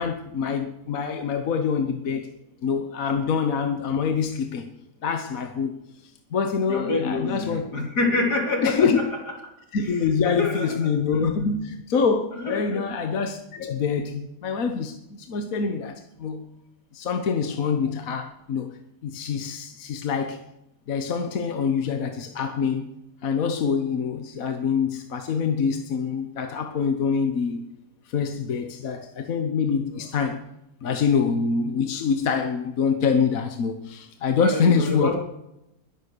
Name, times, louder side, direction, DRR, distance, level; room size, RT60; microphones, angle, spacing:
voice 1, 0.0-2.3 2.6-4.7 5.0-5.7 6.3-7.6 8.6-9.0 9.7-16.5 16.9-18.8 19.0-20.4 20.9-22.9 23.2-27.6 28.1-30.4 30.8-35.1, left 6 dB, 60° left, 1.5 m, -25 dB
voice 2, 6.7-8.9 10.2-10.8 12.3-12.8 34.4-35.2, left 3 dB, 85° left, 3.9 m, -26 dB
20.5 x 7.3 x 6.6 m
omnidirectional pair, 1.7 m